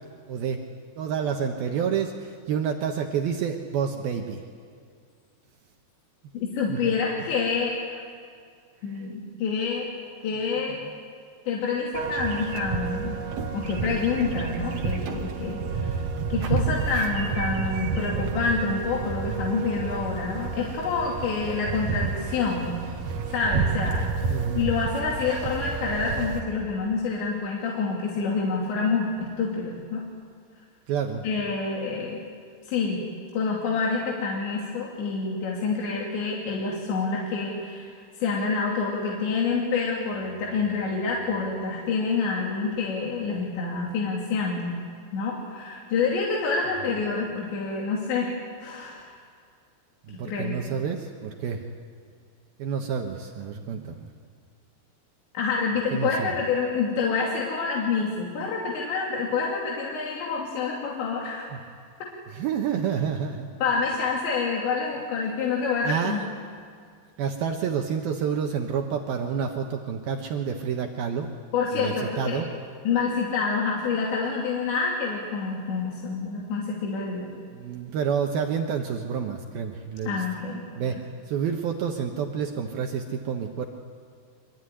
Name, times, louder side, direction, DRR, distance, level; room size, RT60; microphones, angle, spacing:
voice 1, 0.3-0.6 1.0-4.4 6.7-6.9 8.9-9.0 10.8-10.9 24.3-24.7 30.9-31.2 50.1-51.6 52.6-54.1 55.9-56.3 62.3-63.5 65.8-66.2 67.2-71.3 71.7-72.5 77.5-80.2 80.8-81.0 81.3-83.7, right 7 dB, 70° right, 2 dB, 2.8 m, -29 dB
voice 2, 6.3-7.8 8.8-9.9 10.2-10.8 11.5-13.2 13.5-22.7 23.3-24.1 24.5-30.0 31.2-32.2 32.7-33.0 33.3-44.8 45.1-48.3 48.6-49.1 50.1-50.6 55.3-61.5 63.6-66.3 71.5-72.4 72.8-77.3 80.1-80.6, left 4 dB, 85° left, -3 dB, 5.0 m, -27 dB
sound 1, 11.9-26.4, right 5 dB, 55° right, 2.3 m, -30 dB
25.0 x 23.0 x 10.0 m, 2.2 s
omnidirectional pair, 5.0 m